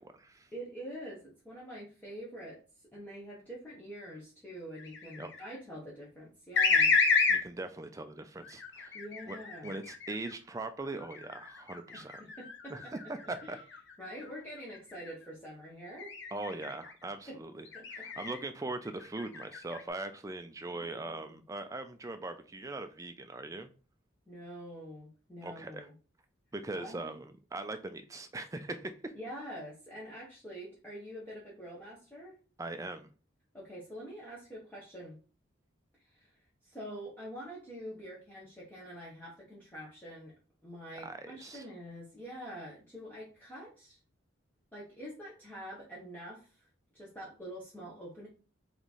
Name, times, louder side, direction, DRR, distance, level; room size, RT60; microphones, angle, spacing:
voice 1, 0.0-0.5 5.2-5.3 7.3-9.0 9.3-9.4 9.6-12.2 12.7-13.6 16.3-23.7 25.4-25.9 26.5-29.1 32.6-33.1 41.0-41.7, right 2 dB, 15° right, 8 dB, 0.3 m, -41 dB
voice 2, 0.5-2.6 2.9-6.9 8.9-9.8 11.9-12.9 13.4-13.6 14.0-16.1 17.3-17.4 17.7-18.3 20.7-21.4 24.3-25.9 26.7-27.2 29.1-32.4 33.5-35.2 36.0-36.3 36.6-40.3 40.6-44.0 44.7-46.7 46.9-48.3, equal, 10° left, -6 dB, 0.9 m, -46 dB
sound 1, 4.8-5.5 6.6-7.4 8.4-10.3 11.0-14.3 14.7-15.1 16.0-16.9 17.7-18.4 18.9-19.8, left 4 dB, 60° left, 0.7 m, -31 dB
3.5 x 3.2 x 4.0 m, 0.36 s
head